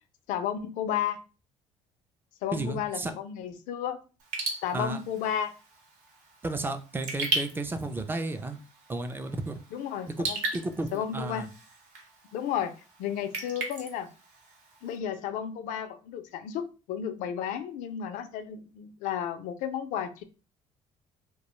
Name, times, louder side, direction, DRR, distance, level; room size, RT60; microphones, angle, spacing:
voice 1, 0.3-1.2 2.4-4.0 4.6-5.5 9.7-10.4 10.9-11.5 12.3-12.7 13.0-14.1 14.8-20.2, left 9 dB, 80° left, 10 dB, 0.4 m, -33 dB
voice 2, 2.5-3.1 4.7-5.0 6.4-8.6 8.9-9.5 10.2-11.5, right 2 dB, 15° right, 8 dB, 0.4 m, -33 dB
Raindrop / Drip, 4.2-15.0, right 3 dB, 70° right, 0.9 m, -38 dB
2.3 x 2.2 x 2.9 m, 0.33 s
cardioid pair, 90°, 13 cm